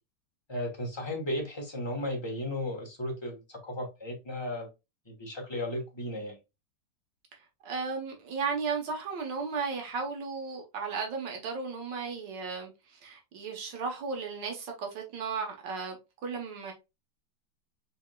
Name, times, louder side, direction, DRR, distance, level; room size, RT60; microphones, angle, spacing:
voice 1, 0.5-4.7 5.1-6.4, left 1 dB, 15° left, 1.1 m, -35 dB
voice 2, 7.6-16.0 16.2-16.7, right 5 dB, 85° right, 1.7 m, -35 dB
4.4 x 4.1 x 2.2 m
omnidirectional pair, 1.9 m